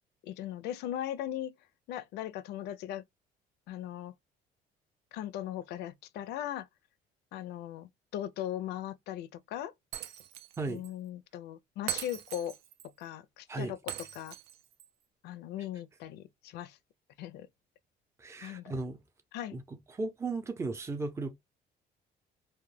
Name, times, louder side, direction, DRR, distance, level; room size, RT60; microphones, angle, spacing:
voice 1, 0.2-1.5 1.9-3.0 3.7-4.1 5.1-6.7 7.3-9.7 10.7-12.6 13.0-13.8 14.1-14.4 15.2-16.8 17.2-17.5 18.4-18.7 19.3-19.6, left 11 dB, 75° left, 0.4 m, -38 dB
Shatter, 9.9-10.6 10.8-10.9 11.9-12.9 13.9-14.9, right 11 dB, 75° right, 0.4 m, -40 dB
voice 2, 18.2-19.0 19.5-21.4, right 3 dB, 15° right, 0.5 m, -36 dB
2.2 x 2.1 x 3.2 m
cardioid pair, 110°, 17 cm